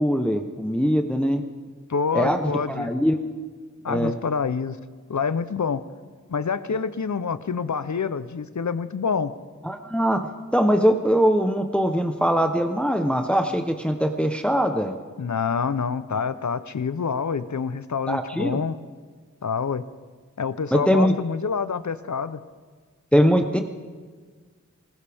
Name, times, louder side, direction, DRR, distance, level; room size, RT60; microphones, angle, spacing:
voice 1, 0.0-1.4 2.1-3.2 3.9-4.1 9.6-10.2 10.5-15.0 18.1-18.6 20.7-21.1 23.1-23.6, equal, 5° left, 5 dB, 0.9 m, -21 dB
voice 2, 1.9-2.9 3.8-4.8 5.1-5.8 6.3-9.3 15.2-18.8 19.4-19.8 20.4-22.4, left 5 dB, 70° left, 14 dB, 0.7 m, -27 dB
20.5 x 19.5 x 3.5 m, 1.5 s
wide cardioid pair, 55°, 30 cm